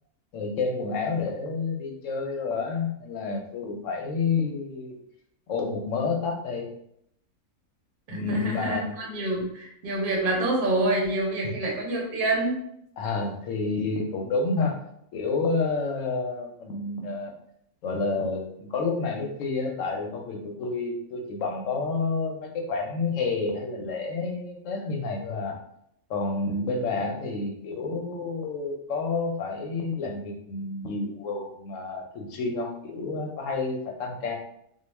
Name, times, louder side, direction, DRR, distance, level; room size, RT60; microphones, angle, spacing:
voice 1, 0.3-5.0 5.5-6.7 8.1-8.9 11.4-11.5 13.0-14.8 15.1-17.3 17.8-25.6 26.1-34.4, left 4 dB, 70° left, 2 dB, 0.9 m, -29 dB
voice 2, 8.1-12.6, right 2 dB, 50° right, -2 dB, 0.7 m, -27 dB
2.3 x 2.2 x 3.1 m, 0.73 s
omnidirectional pair, 1.5 m